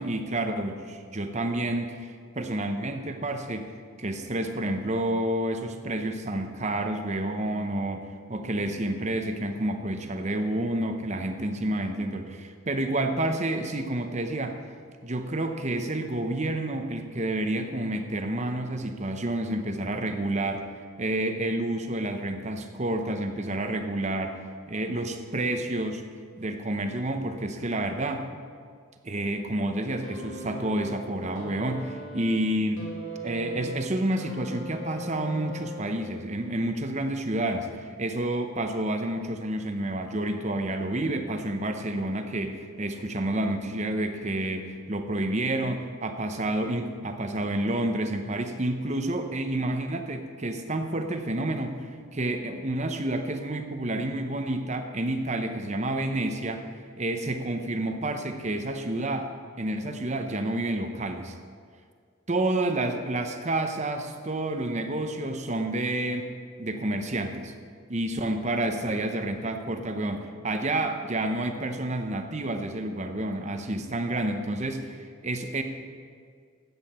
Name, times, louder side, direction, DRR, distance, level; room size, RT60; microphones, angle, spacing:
voice 1, 0.0-3.7 4.0-14.6 15.0-20.7 21.0-24.4 24.7-26.0 26.4-28.3 29.0-32.9 33.2-51.8 52.1-56.6 57.0-59.3 59.6-61.4 62.3-66.3 66.6-67.5 67.9-75.6, right 1 dB, 35° right, 6 dB, 0.8 m, -29 dB
sound 1, 30.0-36.2 37.2-37.4, right 1 dB, 65° left, 2.0 m, -39 dB
13.5 x 8.7 x 4.3 m, 2.1 s
head